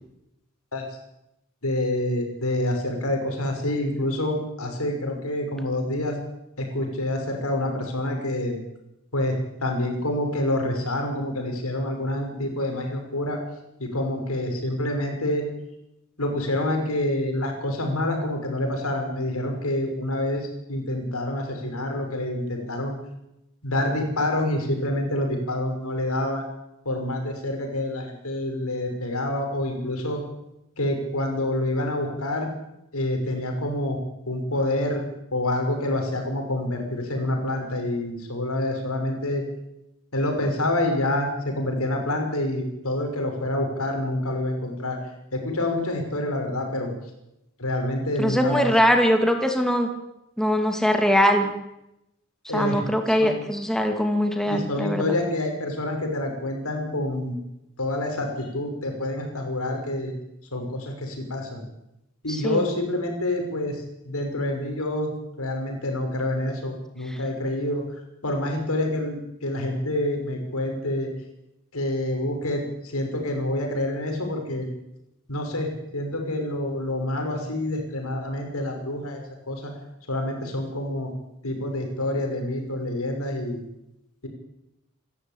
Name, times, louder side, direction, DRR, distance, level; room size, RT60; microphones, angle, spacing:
voice 1, 1.6-6.2 6.6-8.6 9.1-13.4 13.8-15.4 16.2-22.9 23.6-26.4 26.8-30.2 30.8-32.5 32.9-34.0 34.3-35.0 35.3-39.4 40.1-45.0 45.3-46.9 47.6-48.6 52.5-52.8 53.2-53.3 54.4-57.4 57.8-60.1 60.5-61.6 62.2-65.1 65.4-67.8 68.2-71.1 71.7-74.7 75.3-79.7 80.1-81.1 81.4-83.6, left 1 dB, 85° left, 3 dB, 6.2 m, -27 dB
voice 2, 48.2-49.9 50.4-51.5 52.5-55.0 62.4-62.6, equal, ahead, 4 dB, 2.4 m, -21 dB
27.5 x 13.5 x 9.2 m, 0.88 s
head